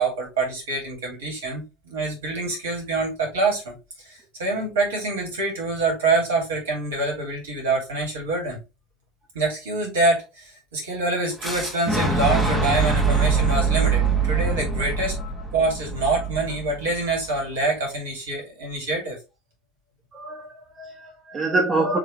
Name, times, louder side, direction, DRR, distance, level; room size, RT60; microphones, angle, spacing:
voice 1, 0.0-8.6 9.3-15.1 15.5-19.2, right 3 dB, 70° right, 1 dB, 2.5 m, -25 dB
Boom, 11.4-17.3, right 4 dB, ahead, 1.3 m, -23 dB
voice 2, 20.1-22.0, right 2 dB, 25° right, 0 dB, 1.3 m, -26 dB
5.0 x 3.1 x 3.3 m, 0.26 s
figure-of-eight pair, 70°, 0 cm